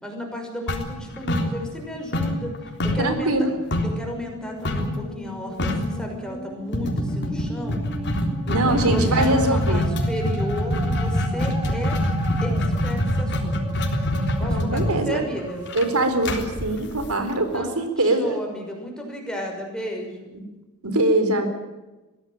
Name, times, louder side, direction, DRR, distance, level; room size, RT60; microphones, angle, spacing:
voice 1, 0.0-2.5 2.8-3.3 3.8-7.8 8.5-12.0 12.4-13.6 14.4-15.7 17.2-20.3, equal, 5° left, 1 dB, 6.1 m, -33 dB
sound 1, 0.7-1.9 2.1-4.0 4.6-5.0 5.3-5.4 5.6-6.0 6.7-17.5, left 1 dB, 55° left, 3.6 m, -24 dB
voice 2, 3.0-3.5 8.5-9.9 14.4-15.2 15.7-18.3 20.8-21.5, right 2 dB, 90° right, 8 dB, 4.1 m, -22 dB
Musical instrument, 3.7-16.7, right 1 dB, 15° right, 3.8 m, -39 dB
22.5 x 16.5 x 9.0 m, 1.1 s
head